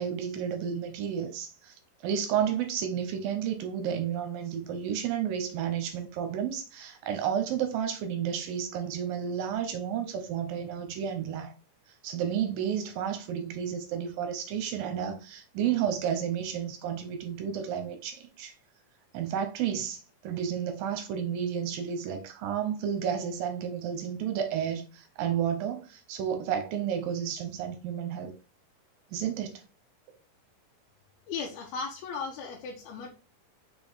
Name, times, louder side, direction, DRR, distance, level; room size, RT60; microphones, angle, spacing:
voice 1, 0.0-1.8 2.0-11.5 12.0-18.5 19.1-28.3 29.1-29.6, right 8 dB, 75° right, 2.4 m, -31 dB
voice 2, 31.3-33.1, left 5 dB, 80° left, 2.8 m, -36 dB
6.0 x 4.4 x 3.5 m
omnidirectional pair, 4.5 m